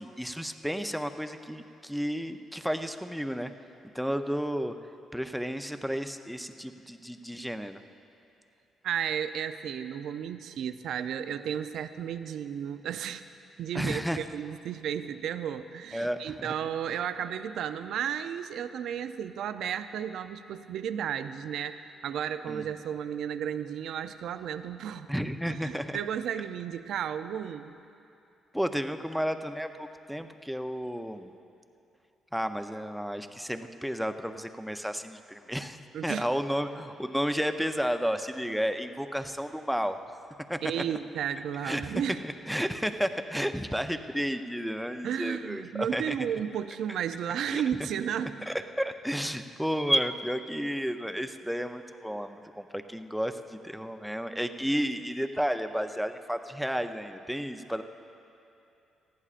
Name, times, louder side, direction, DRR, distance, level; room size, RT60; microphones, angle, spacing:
voice 1, 0.0-3.5 3.9-4.7 5.1-7.8 13.7-14.2 15.9-16.5 22.5-22.6 25.1-26.0 28.5-31.3 32.3-35.8 36.0-40.0 40.5-40.7 41.6-46.2 47.4-47.9 48.5-57.8, equal, ahead, 7 dB, 0.6 m, -32 dB
voice 2, 8.8-13.2 13.6-25.1 25.5-27.7 35.9-36.3 40.6-42.2 45.0-48.5, right 9 dB, 75° right, 11 dB, 0.4 m, -33 dB
19.5 x 14.5 x 2.5 m, 2.7 s
cardioid pair, 90°, 0 cm